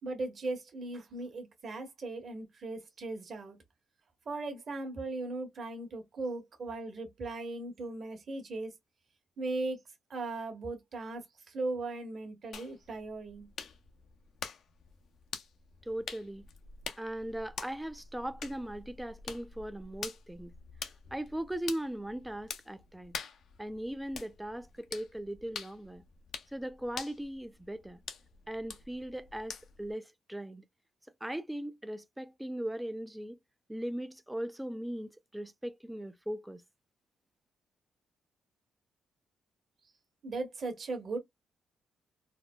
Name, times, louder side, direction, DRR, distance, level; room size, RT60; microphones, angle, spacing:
voice 1, 0.0-3.6 4.2-8.7 9.4-9.8 10.1-13.5 40.2-41.2, right 2 dB, 50° right, 1.3 m, -38 dB
sound 1, 12.5-29.9, left 6 dB, 65° left, 0.6 m, -46 dB
voice 2, 15.8-16.5 17.0-20.5 21.1-23.2 23.6-26.0 26.5-28.0 28.5-30.6 31.2-33.4 33.7-36.6, right 1 dB, 5° right, 0.4 m, -39 dB
4.1 x 2.0 x 2.2 m
cardioid pair, 90°, 0 cm